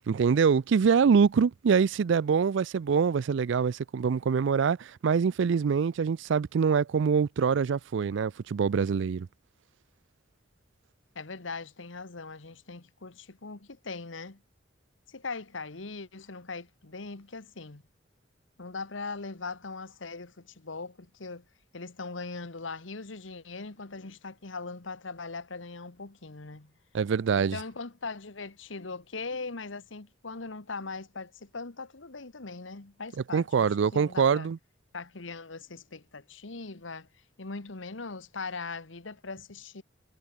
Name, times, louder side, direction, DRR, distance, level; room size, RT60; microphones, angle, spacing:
voice 1, 0.1-9.3 26.9-27.6 33.3-34.6, right 6 dB, 70° right, 0.4 m, -24 dB
voice 2, 11.1-14.4 15.1-17.8 18.6-21.4 21.7-26.7 27.4-34.5 34.9-37.1 37.4-39.8, left 4 dB, 85° left, 1.5 m, -40 dB
head